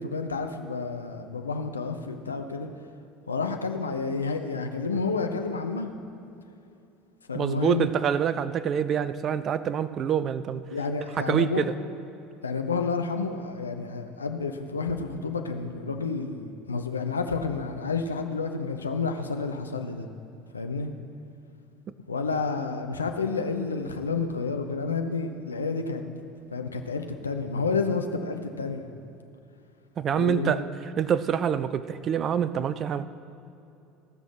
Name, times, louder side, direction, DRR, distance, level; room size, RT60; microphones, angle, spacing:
voice 1, 0.0-2.7 3.3-5.9 7.3-7.9 10.7-11.6 12.4-20.1 20.5-20.9 22.1-26.0 26.5-28.8 30.1-30.6, left 4 dB, 80° left, 6 dB, 0.6 m, -30 dB
voice 2, 7.3-10.7 11.2-11.7 30.0-30.6 31.0-33.0, right 8 dB, 40° right, 15 dB, 0.5 m, -26 dB
17.0 x 6.2 x 5.9 m, 2.8 s
figure-of-eight pair, 65°, 0 cm